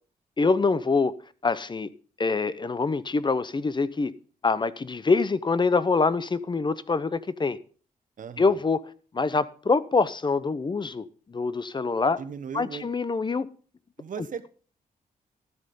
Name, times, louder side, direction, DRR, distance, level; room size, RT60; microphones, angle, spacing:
voice 1, 0.4-1.1 1.4-1.9 2.2-4.1 4.4-7.6 8.4-8.8 9.1-12.2 12.5-13.5, left 4 dB, 30° left, 0.8 m, -25 dB
voice 2, 8.2-8.6 12.2-12.8 14.0-14.5, right 7 dB, 60° right, 1.2 m, -37 dB
13.0 x 7.3 x 5.4 m
cardioid pair, 85°, 15 cm